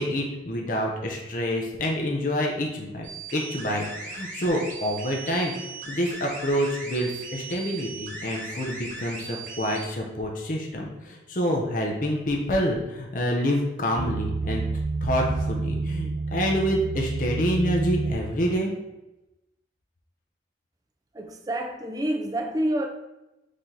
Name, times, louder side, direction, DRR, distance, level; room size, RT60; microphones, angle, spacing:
voice 1, 0.0-3.1 3.3-5.5 5.9-14.6 15.0-18.7, equal, 45° left, 0.6 m, -27 dB
sound 1, 3.0-9.9, right 3 dB, 45° right, 1.0 m, -38 dB
sound 2, 14.0-18.2, right 3 dB, 90° right, 0.5 m, -29 dB
voice 2, 21.1-22.9, right 1 dB, 20° right, 0.4 m, -28 dB
4.9 x 2.8 x 3.7 m
head